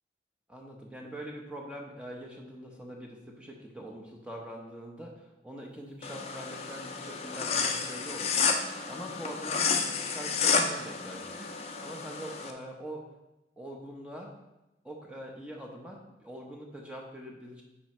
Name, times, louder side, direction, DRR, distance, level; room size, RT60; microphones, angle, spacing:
voice 1, 0.5-11.5 11.8-13.0 13.6-14.3 14.8-17.6, equal, 5° right, 0 dB, 0.9 m, -43 dB
sound 1, 6.0-12.5, left 5 dB, 35° left, 0.6 m, -31 dB
9.7 x 4.8 x 3.2 m, 0.95 s
head